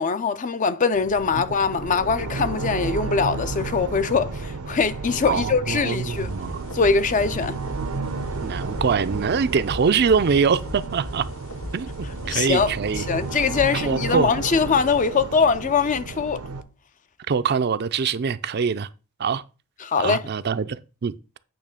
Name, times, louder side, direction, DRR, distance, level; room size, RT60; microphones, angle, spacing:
voice 1, 0.0-6.3 6.7-7.6 12.3-12.7 13.0-16.4 19.8-20.2, left 5 dB, 35° left, 0.4 m, -22 dB
sound 1, 0.9-16.6, right 3 dB, 85° right, 0.8 m, -32 dB
voice 2, 5.3-6.6 8.4-11.3 11.7-11.9 12.3-13.1 13.7-14.3 17.3-18.9 19.2-19.4 20.0-21.4, right 6 dB, 45° right, 0.4 m, -23 dB
sound 2, 6.1-13.8, left 1 dB, 60° left, 1.1 m, -39 dB
8.7 x 3.2 x 6.4 m
head